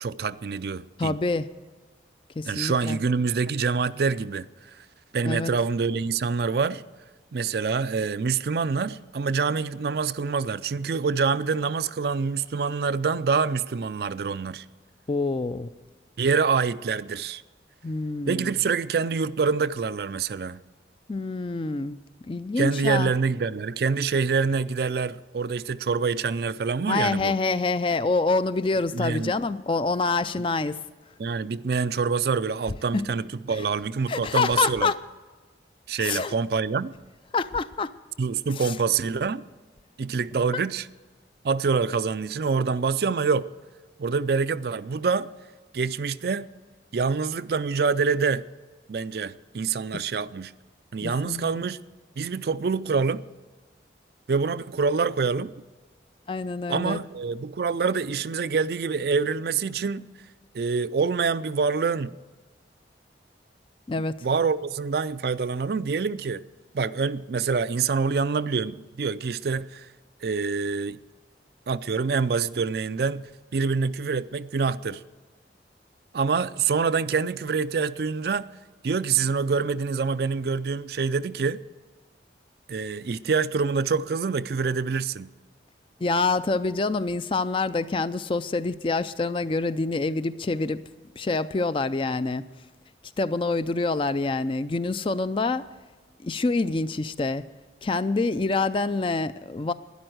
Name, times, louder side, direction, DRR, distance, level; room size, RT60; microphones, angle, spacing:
voice 1, 0.0-1.2 2.5-4.5 4.8-4.9 5.1-6.8 7.3-14.6 16.2-17.4 18.3-20.6 22.6-27.4 28.9-29.4 31.2-34.9 35.9-36.9 38.2-39.4 40.0-40.9 41.4-43.5 44.0-45.3 45.7-46.5 46.9-48.5 48.9-50.5 50.9-51.8 52.2-53.2 54.3-55.5 56.7-60.1 60.5-62.2 64.2-66.4 66.7-69.9 70.2-71.0 71.7-73.3 73.5-75.0 76.1-78.5 78.8-81.6 82.7-85.3, right 5 dB, 55° right, 0.4 m, -26 dB
voice 2, 1.0-1.5 2.4-3.0 5.2-5.5 15.1-15.7 17.8-18.5 21.1-22.0 22.3-23.1 26.9-30.8 32.9-33.0 34.1-35.0 36.0-36.4 37.3-37.9 38.6-38.7 40.5-40.6 51.0-51.6 56.3-57.0 63.9-64.2 86.0-90.8 91.2-92.4 93.2-95.7 96.2-97.4 97.8-99.7, left 3 dB, 30° left, 0.4 m, -26 dB
12.5 x 10.5 x 7.8 m
head